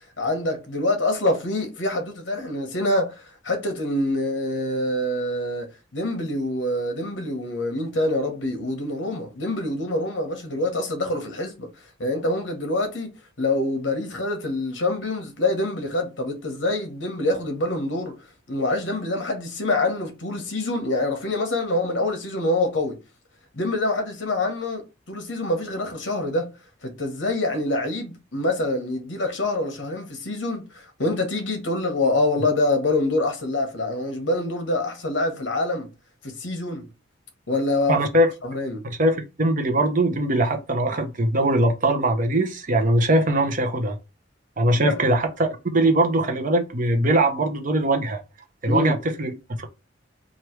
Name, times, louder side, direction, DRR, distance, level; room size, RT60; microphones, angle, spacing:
voice 1, 0.2-11.7 12.0-13.1 13.4-18.1 18.5-23.0 23.5-26.5 26.8-35.9 36.2-36.9 37.5-38.0 38.4-38.8 44.7-45.0 48.7-49.0, left 2 dB, 70° left, 1.1 m, -25 dB
voice 2, 37.9-38.3 39.0-44.0 44.6-48.2 48.6-49.7, right 1 dB, 45° right, 0.7 m, -21 dB
3.1 x 2.5 x 4.4 m
head